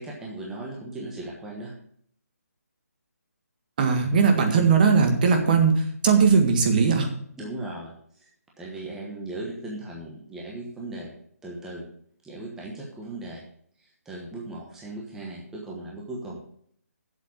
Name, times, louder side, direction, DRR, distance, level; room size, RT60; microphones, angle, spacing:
voice 1, 0.0-1.7 7.4-8.3 8.6-11.1 11.4-11.9 12.2-13.4 13.8-16.4, right 2 dB, 5° right, -3 dB, 1.2 m, -37 dB
voice 2, 3.8-7.1, right 5 dB, 35° right, 4 dB, 1.8 m, -19 dB
8.0 x 7.4 x 8.3 m, 0.64 s
hypercardioid pair, 165°, 9 cm